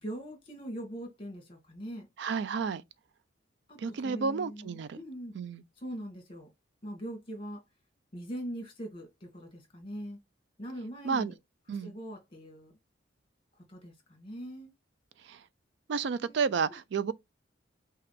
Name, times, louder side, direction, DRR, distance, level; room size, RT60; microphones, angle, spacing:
voice 1, 0.0-2.1 3.7-5.4 5.8-6.5 6.8-7.6 8.1-10.2 10.6-11.4 11.8-12.7 13.7-14.7 16.2-16.8, equal, 30° left, 1.9 m, -42 dB
voice 2, 2.2-2.8 3.8-5.0 5.4-5.6 11.0-11.3 11.7-12.0 15.2-15.4 15.9-17.1, right 5 dB, 65° right, 0.4 m, -31 dB
5.8 x 2.4 x 3.4 m
head